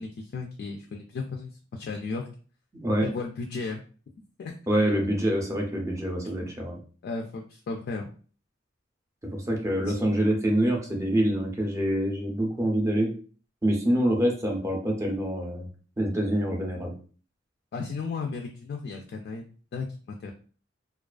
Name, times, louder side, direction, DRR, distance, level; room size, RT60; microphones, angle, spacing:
voice 1, 0.0-2.3 3.0-3.8 4.4-4.5 7.0-8.1 9.9-10.0 17.7-19.4 19.7-20.3, left 4 dB, 55° left, 2 dB, 0.3 m, -34 dB
voice 2, 4.7-6.8 9.2-13.1 13.6-15.7 16.0-16.9, right 1 dB, 15° right, 1 dB, 0.5 m, -26 dB
2.3 x 2.3 x 2.3 m, 0.40 s
head